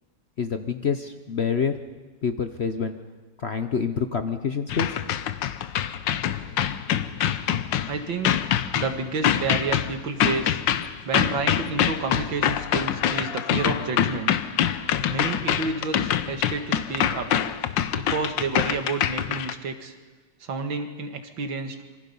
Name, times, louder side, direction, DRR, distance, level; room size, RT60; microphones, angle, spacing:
voice 1, 0.4-1.7 2.2-2.9 3.4-5.0, left 6 dB, 50° left, 8 dB, 0.8 m, -27 dB
sound 1, 4.7-19.5, left 10 dB, 75° left, 1.5 m, -25 dB
voice 2, 7.9-8.4 8.7-10.6 11.0-14.3 15.1-17.3 17.9-20.0 20.4-21.8, right 4 dB, 90° right, 6 dB, 2.4 m, -30 dB
26.5 x 24.5 x 5.5 m, 1.4 s
omnidirectional pair, 2.0 m